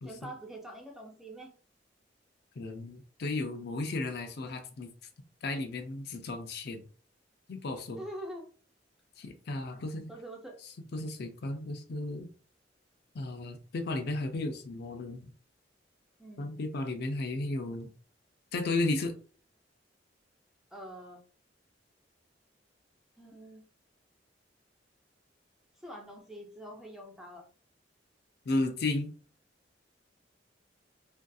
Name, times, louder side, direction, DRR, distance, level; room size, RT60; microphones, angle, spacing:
voice 1, 0.0-1.5 8.0-8.4 10.1-10.6 16.2-16.6 20.7-21.2 23.2-23.6 25.8-27.5, right 1 dB, 5° right, 0 dB, 0.5 m, -45 dB
voice 2, 2.6-4.9 5.4-6.9 7.5-8.0 9.2-10.1 10.9-12.3 13.1-15.3 16.4-17.9 18.5-19.1 28.5-29.1, left 2 dB, 60° left, 6 dB, 0.4 m, -34 dB
2.5 x 2.5 x 2.3 m, 0.41 s
head